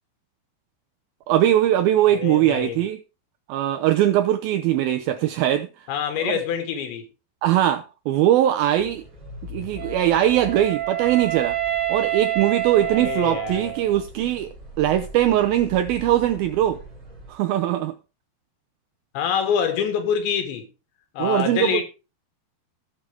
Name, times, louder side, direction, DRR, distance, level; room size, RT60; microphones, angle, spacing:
voice 1, 1.3-3.0 3.5-5.9 6.2-6.4 7.4-9.0 9.5-11.6 11.9-14.5 14.8-16.8 17.3-17.9 21.2-21.8, right 12 dB, 85° right, 2.1 m, -21 dB
voice 2, 2.1-2.9 5.9-7.1 12.8-13.7 19.1-20.7 21.2-21.8, left 7 dB, 90° left, 4.1 m, -26 dB
sound 1, 8.8-17.3, left 1 dB, 25° right, 5.4 m, -42 dB
Wind instrument woodwind instrument, 9.8-14.0, right 13 dB, 50° right, 2.2 m, -27 dB
17.5 x 6.3 x 3.4 m
omnidirectional pair, 5.0 m